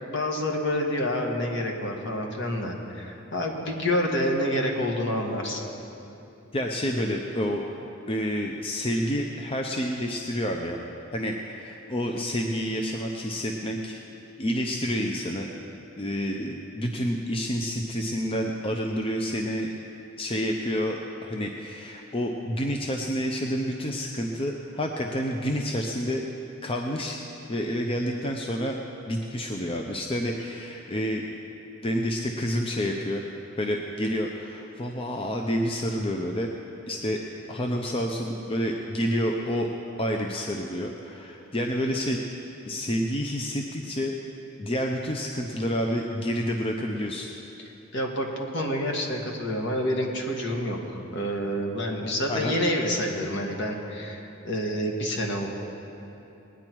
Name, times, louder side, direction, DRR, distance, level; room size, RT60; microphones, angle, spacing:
voice 1, 0.1-5.7 47.9-55.5, left 1 dB, 60° left, 1 dB, 1.7 m, -28 dB
voice 2, 6.5-7.6 8.1-10.8 11.1-14.0 14.4-15.5 16.0-19.7 20.2-26.2 26.6-27.2 27.5-28.8 29.1-31.2 31.8-33.2 33.6-36.5 36.9-37.2 37.5-39.7 40.0-42.3 42.6-44.1 44.6-47.3 52.3-52.5, equal, 25° left, 2 dB, 0.7 m, -29 dB
20.0 x 9.7 x 4.6 m, 3.0 s
head